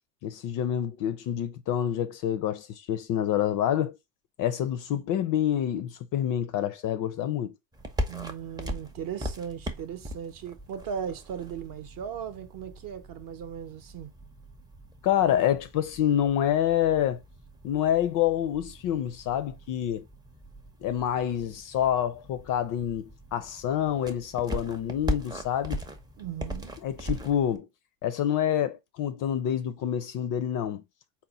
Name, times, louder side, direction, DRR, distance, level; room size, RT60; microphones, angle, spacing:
voice 1, 0.2-4.0 4.4-7.5 15.0-17.2 17.6-20.0 20.8-25.8 26.8-27.7 28.0-30.8, left 10 dB, 45° left, 0.4 m, -27 dB
sound 1, 7.7-27.6, equal, 10° right, 0.5 m, -39 dB
voice 2, 8.1-14.1 26.2-26.7, right 8 dB, 40° right, 0.7 m, -37 dB
4.2 x 2.1 x 3.8 m
hypercardioid pair, 90°, 50 cm